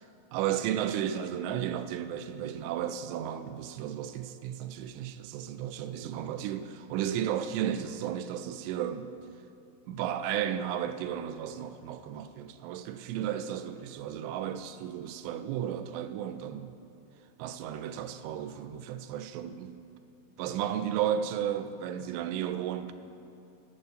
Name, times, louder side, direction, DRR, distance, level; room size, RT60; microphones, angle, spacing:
voice 1, 0.3-9.1 9.9-16.8 17.4-19.8 20.4-22.9, right 10 dB, 85° right, 2.7 m, -33 dB
22.5 x 7.6 x 2.6 m
omnidirectional pair, 4.9 m